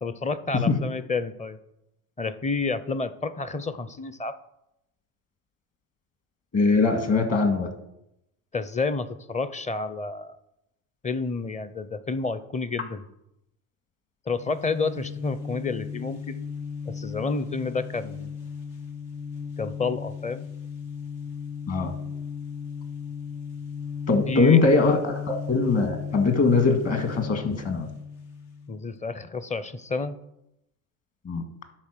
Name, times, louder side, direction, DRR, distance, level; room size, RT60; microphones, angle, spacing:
voice 1, 0.0-1.6 2.2-4.4 8.5-10.4 11.0-13.0 14.3-16.5 16.9-18.3 19.6-20.5 24.3-24.7 28.7-30.2, left 4 dB, 15° left, 14 dB, 0.6 m, -30 dB
voice 2, 6.5-7.7 21.7-21.9 24.1-27.9 31.3-31.4, left 4 dB, 40° left, 6 dB, 2.0 m, -22 dB
sound 1, 14.3-28.8, left 6 dB, 75° left, 1.9 m, -36 dB
11.0 x 4.2 x 6.7 m, 0.85 s
supercardioid pair, 90°, 41 cm